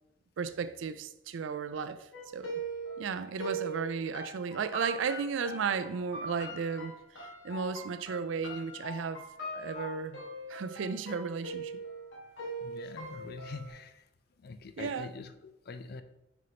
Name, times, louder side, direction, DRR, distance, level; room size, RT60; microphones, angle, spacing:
voice 1, 0.4-2.5 3.0-9.3 9.5-10.2 10.5-11.7 14.8-15.1, right 5 dB, 85° right, 0.4 m, -34 dB
sound 1, 2.1-13.7, right 2 dB, 80° left, 1.6 m, -41 dB
voice 2, 12.6-14.1 14.4-16.0, left 4 dB, 55° left, 0.4 m, -44 dB
6.2 x 5.3 x 2.9 m
head